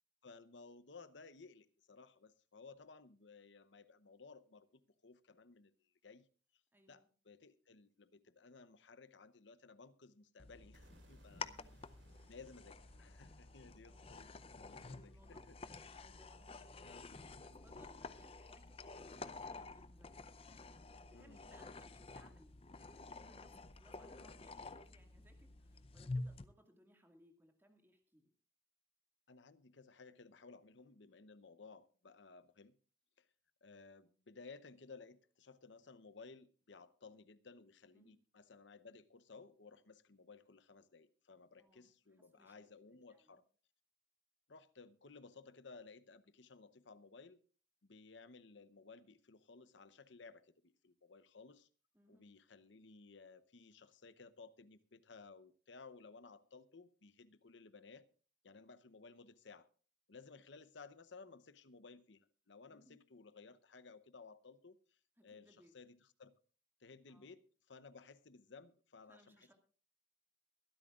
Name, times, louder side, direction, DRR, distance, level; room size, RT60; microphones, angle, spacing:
voice 1, 0.2-6.3 6.9-11.5 12.3-15.6 16.8-17.1 17.4-17.5 21.1-21.4 29.3-32.7 33.2-33.3 33.6-43.4 44.5-47.4 47.8-51.7 52.1-58.1 58.4-59.7 60.1-66.4 66.8-69.5, left 4 dB, 70° left, 0.8 m, -58 dB
voice 2, 6.7-7.1 11.4-11.8 13.9-14.2 14.5-20.3 21.1-28.3 37.9-38.1 41.6-41.9 42.2-42.6 43.1-43.4 51.9-52.3 62.7-63.0 65.2-65.7 67.1-67.3 69.1-69.5, equal, 10° right, 2.0 m, -68 dB
sound 1, 10.4-26.4, left 3 dB, 30° left, 0.5 m, -50 dB
sound 2, 10.7-16.8, right 1 dB, 70° right, 2.5 m, -70 dB
23.0 x 12.5 x 2.4 m
head